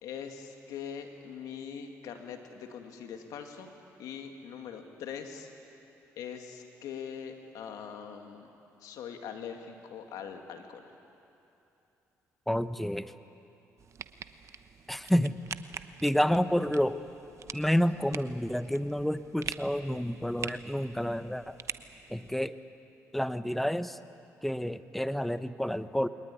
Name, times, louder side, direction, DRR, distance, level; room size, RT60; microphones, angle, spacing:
voice 1, 0.0-3.7 4.0-5.5 6.2-8.5 8.8-10.8, left 7 dB, 80° left, 4 dB, 2.3 m, -42 dB
voice 2, 12.5-13.1 14.9-15.4 16.0-17.0 17.5-21.6 22.1-22.5 23.1-24.0 24.4-26.1, equal, 5° left, 12 dB, 1.0 m, -29 dB
sound 1, 13.8-22.5, right 7 dB, 55° right, 1.0 m, -45 dB
23.0 x 19.5 x 9.9 m, 2.8 s
supercardioid pair, 65°, 6 cm